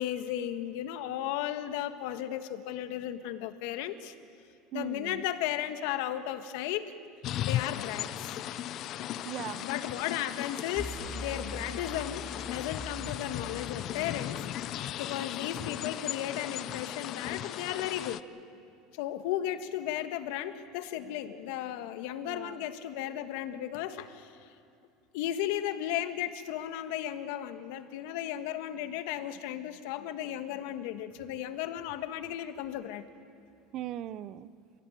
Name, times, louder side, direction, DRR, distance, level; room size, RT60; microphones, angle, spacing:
voice 1, 0.0-4.1 4.7-6.9 7.4-8.4 9.6-18.2 18.9-24.4 25.1-33.0, left 11 dB, 70° left, 10 dB, 1.5 m, -35 dB
voice 2, 4.7-5.2 9.2-9.7 22.2-22.7 33.7-34.5, right 12 dB, 40° right, 17 dB, 0.6 m, -39 dB
sound 1, 7.2-18.2, left 12 dB, 40° left, 0.6 m, -37 dB
sound 2, 10.8-13.7, equal, 5° right, 3.4 m, -42 dB
27.0 x 17.0 x 9.1 m, 2.4 s
cardioid pair, 160°, 0 cm